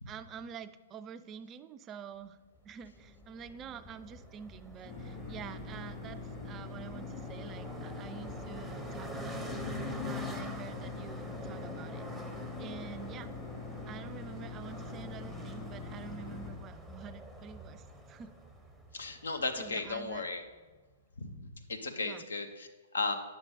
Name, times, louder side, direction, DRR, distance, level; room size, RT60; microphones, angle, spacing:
voice 1, 0.1-2.4 2.6-12.3 12.6-13.3 13.9-18.4 19.6-20.3 22.0-22.3, right 7 dB, 25° right, 12 dB, 0.3 m, -47 dB
sound 1, 2.8-20.3, left 1 dB, ahead, 0.7 m, -45 dB
sound 2, 4.8-16.5, left 3 dB, 35° left, 2.2 m, -44 dB
voice 2, 18.9-20.4 21.2-23.1, left 3 dB, 70° left, 7 dB, 0.8 m, -36 dB
9.5 x 6.1 x 3.9 m, 1.3 s
figure-of-eight pair, 115°, 0 cm